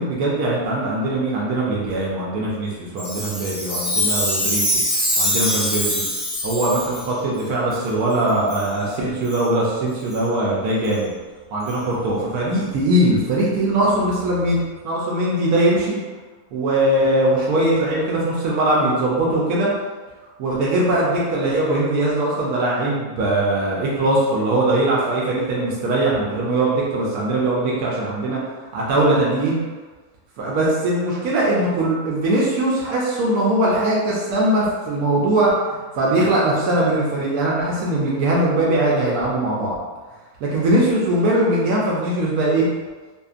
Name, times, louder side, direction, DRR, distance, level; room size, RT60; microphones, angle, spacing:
voice 1, 0.0-4.7 5.2-6.0 6.4-11.1 11.5-14.6 14.8-16.0 16.5-19.7 20.4-28.4 28.7-29.6 30.4-39.8 40.4-42.7, right 1 dB, 80° right, -5 dB, 1.1 m, -21 dB
Chime, 3.0-7.1 7.7-7.8 8.5-8.7 9.2-9.4 10.1-10.2 10.8-10.9 11.7-11.8, equal, 15° left, 1.0 m, -23 dB
2.7 x 2.4 x 2.3 m, 1.3 s
omnidirectional pair, 1.5 m